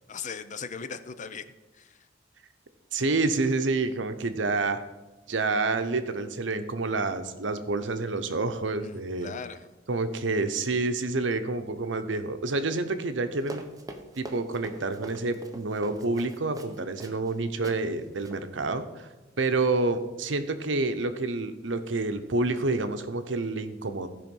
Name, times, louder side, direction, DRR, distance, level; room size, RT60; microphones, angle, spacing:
voice 1, 0.1-1.5 1.7-2.0 8.8-9.7, left 6 dB, 40° left, 11 dB, 0.6 m, -39 dB
voice 2, 2.9-4.8 5.3-9.3 9.9-13.6 14.2-19.1 19.4-24.1, right 3 dB, 80° right, 9 dB, 0.8 m, -28 dB
Run, 13.4-17.3 17.6-17.8 18.2-18.4, right 1 dB, 20° right, 0.9 m, -43 dB
14.5 x 5.1 x 5.4 m, 1.1 s
head